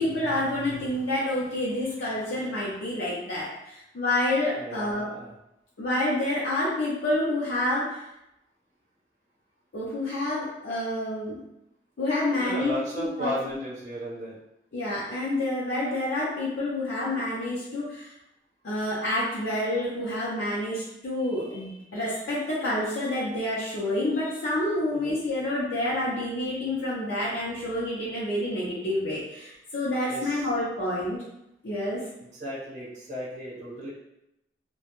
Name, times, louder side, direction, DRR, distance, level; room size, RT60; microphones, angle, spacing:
voice 1, 0.0-5.0 5.8-8.0 9.7-11.4 12.0-13.6 14.7-18.1 18.6-31.2 31.6-32.0, left 1 dB, 90° left, -8 dB, 0.5 m, -28 dB
voice 2, 4.6-5.3 12.4-14.3 24.9-25.1 30.1-30.4 32.2-33.9, equal, 40° right, -7 dB, 0.7 m, -35 dB
2.1 x 2.0 x 2.9 m, 0.85 s
head